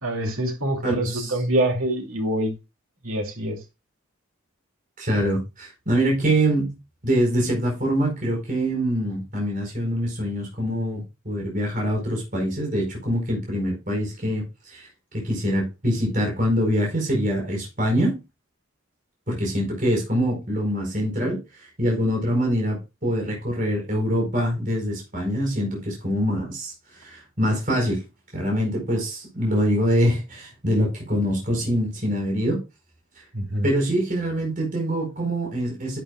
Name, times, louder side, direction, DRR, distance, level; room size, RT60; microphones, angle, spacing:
voice 1, 0.0-2.5 3.0-3.6 33.3-33.7, right 1 dB, 90° right, 2.8 m, -25 dB
voice 2, 0.8-1.3 5.0-6.8 7.0-14.9 15.1-18.2 19.3-21.4 21.8-26.7 27.0-28.0 28.3-32.6 33.6-36.0, equal, 40° right, 4.8 m, -24 dB
11.0 x 8.9 x 2.4 m
head